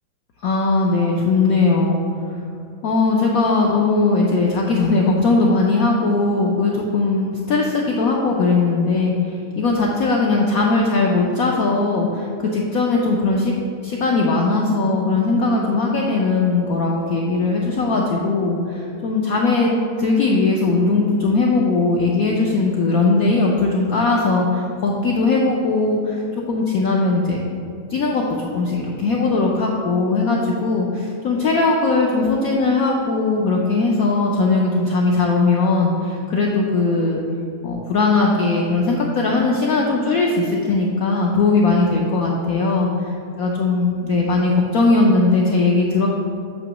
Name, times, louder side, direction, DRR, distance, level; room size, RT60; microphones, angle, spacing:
voice 1, 0.4-2.0 2.8-13.5 13.8-19.7 20.0-26.2 26.5-27.4 27.9-37.2 37.6-42.9 43.4-46.1, left 3 dB, 75° left, -2 dB, 0.8 m, -19 dB
7.7 x 3.0 x 6.1 m, 2.5 s
omnidirectional pair, 2.2 m